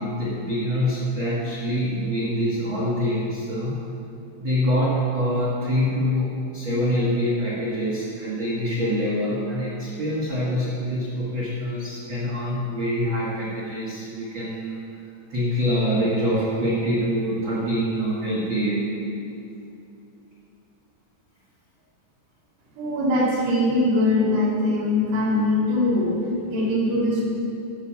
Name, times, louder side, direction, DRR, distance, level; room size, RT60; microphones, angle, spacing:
voice 1, 0.0-3.8 4.4-14.8 15.3-18.9, equal, 60° right, -7 dB, 1.3 m, -25 dB
voice 2, 22.8-26.2 26.4-27.2, left 1 dB, 85° right, -5 dB, 4.2 m, -22 dB
12.5 x 5.9 x 7.0 m, 2.7 s
omnidirectional pair, 4.6 m